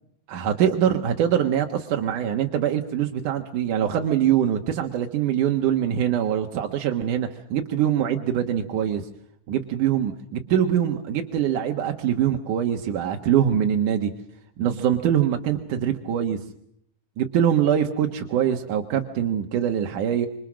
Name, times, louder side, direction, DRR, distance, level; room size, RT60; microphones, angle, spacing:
voice 1, 0.3-9.1 9.5-14.1 14.6-16.4 17.2-20.3, right 9 dB, 60° right, 3 dB, 2.3 m, -23 dB
27.0 x 25.0 x 6.4 m, 0.71 s
omnidirectional pair, 5.3 m